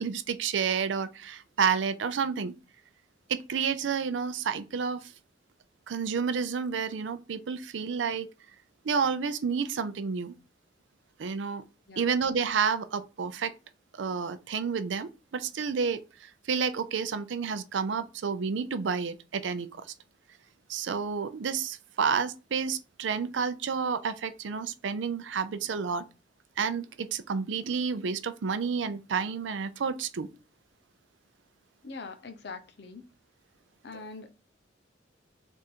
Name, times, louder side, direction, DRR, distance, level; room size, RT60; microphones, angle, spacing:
voice 1, 0.0-2.5 3.3-5.1 5.9-8.3 8.8-10.3 11.2-11.6 12.0-13.5 13.9-19.8 20.7-26.0 26.6-30.3, right 6 dB, 80° right, 0.5 m, -30 dB
voice 2, 11.9-12.2 31.8-33.1 33.8-34.3, left 4 dB, 60° left, 0.6 m, -43 dB
3.6 x 2.5 x 4.2 m
head